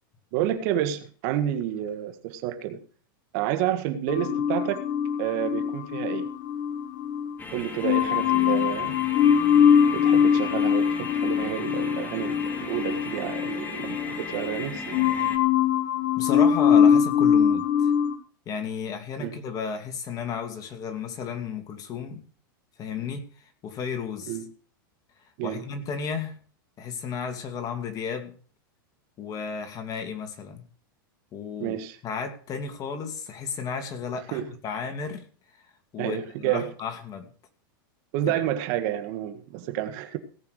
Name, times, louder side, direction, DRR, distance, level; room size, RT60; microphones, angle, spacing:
voice 1, 0.3-2.8 3.3-4.9 5.2-6.3 7.5-9.0 9.8-15.0 19.2-19.4 24.3-24.5 25.4-25.6 31.6-32.0 34.3-34.5 36.0-36.7 38.1-40.2, right 11 dB, 55° right, 9 dB, 1.6 m, -29 dB
sound 1, 4.1-7.3 7.8-14.6 14.9-18.2, left 8 dB, 50° left, 1.9 m, -22 dB
sound 2, 7.4-15.4, left 4 dB, 15° left, 1.9 m, -37 dB
voice 2, 16.2-17.9 18.5-22.2 22.8-24.4 25.4-26.4 26.8-28.3 29.2-30.6 31.3-31.8 32.0-35.2 35.9-37.3 38.3-38.4, left 6 dB, 30° left, 6 dB, 2.5 m, -33 dB
17.5 x 5.9 x 6.5 m, 0.43 s
supercardioid pair, 130°, 12 cm